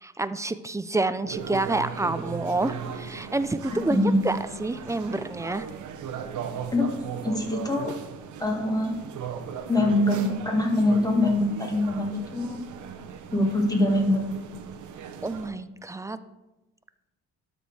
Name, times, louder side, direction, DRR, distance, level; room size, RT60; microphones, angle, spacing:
voice 1, 0.0-5.7 15.2-16.2, right 2 dB, 10° right, 13 dB, 0.4 m, -28 dB
sound 1, 1.3-15.5, right 7 dB, 75° right, 0.9 m, -38 dB
voice 2, 3.9-4.2 6.7-6.9 7.2-7.9 8.4-9.0 9.7-12.6 13.3-14.2, left 1 dB, 10° left, 0 dB, 1.9 m, -23 dB
12.5 x 4.3 x 4.7 m, 1.1 s
cardioid pair, 90°, 30 cm